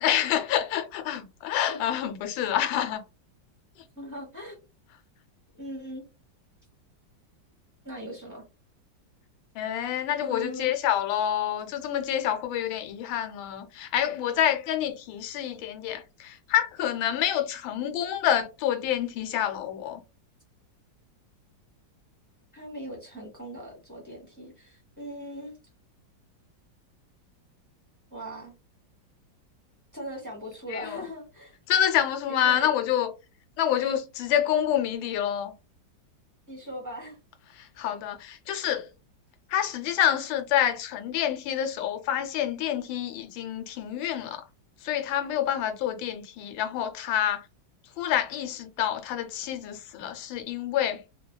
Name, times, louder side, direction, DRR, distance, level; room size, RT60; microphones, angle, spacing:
voice 1, 0.0-3.0 9.5-20.0 30.7-31.0 31.7-33.1 33.6-35.5 37.6-38.9 39.5-44.4 44.8-47.4 48.0-51.0, left 10 dB, 85° left, 1.3 m, -27 dB
voice 2, 4.0-4.6 5.5-6.0 7.8-8.4 10.2-10.8 22.5-25.6 28.1-28.5 29.9-31.6 32.3-32.7 36.5-37.2, equal, 15° right, 0.7 m, -39 dB
3.3 x 2.1 x 2.2 m
omnidirectional pair, 2.0 m